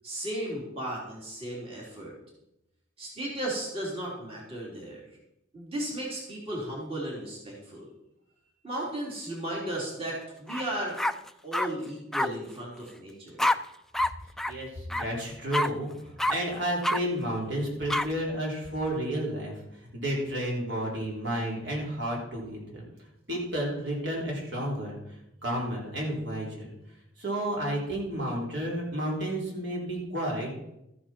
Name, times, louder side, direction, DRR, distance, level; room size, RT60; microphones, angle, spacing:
voice 1, 0.0-2.1 3.0-5.0 5.5-7.8 8.6-11.0 11.4-13.4, right 1 dB, 30° right, -4 dB, 3.4 m, -35 dB
sound 1, 10.5-10.6 11.0-11.7 12.1-12.3 13.4-13.6 13.9-14.1 14.4-14.5 14.9-15.0 15.5-15.7 16.2-16.3 16.8-17.0 17.9-18.1, left 1 dB, ahead, 0.3 m, -26 dB
voice 2, 14.5-19.5 19.8-22.8 23.3-25.0 25.4-26.7 27.2-30.5, right 1 dB, 65° right, -3 dB, 3.7 m, -31 dB
13.5 x 9.7 x 4.4 m, 0.86 s
head